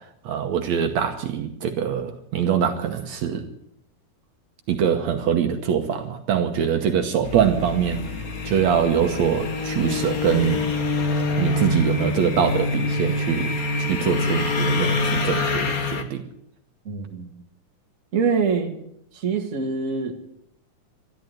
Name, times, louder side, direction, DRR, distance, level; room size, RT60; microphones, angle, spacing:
voice 1, 0.3-3.4 4.7-8.0 8.4-10.6 11.4-16.2, right 8 dB, 70° right, 6 dB, 2.2 m, -23 dB
sound 1, 7.2-16.0, left 3 dB, 45° left, 1.1 m, -25 dB
voice 2, 16.8-17.3 18.1-18.7 19.1-20.1, right 5 dB, 30° right, 2 dB, 1.8 m, -24 dB
13.5 x 12.0 x 9.2 m, 0.75 s
omnidirectional pair, 3.6 m